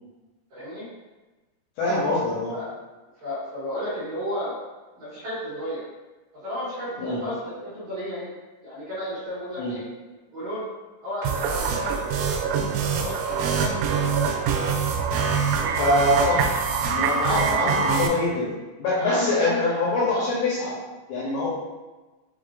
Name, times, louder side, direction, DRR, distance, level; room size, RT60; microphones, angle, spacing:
voice 1, 0.5-0.9 2.5-2.7 3.2-4.5 5.0-5.8 6.4-8.3 8.6-9.8 10.3-10.7 11.0-12.0 12.9-14.7 15.4-15.7 17.5-17.6 18.9-19.8, left 1 dB, 60° right, -13 dB, 1.9 m, -33 dB
voice 2, 1.8-2.6 7.0-7.2 9.6-9.7 15.8-16.5 16.9-18.5 18.8-20.8 21.1-21.5, left 2 dB, 75° left, -6 dB, 2.7 m, -24 dB
sound 1, 11.2-18.1, right 6 dB, 85° right, 2.9 m, -24 dB
7.6 x 2.7 x 2.5 m, 1.2 s
omnidirectional pair, 5.7 m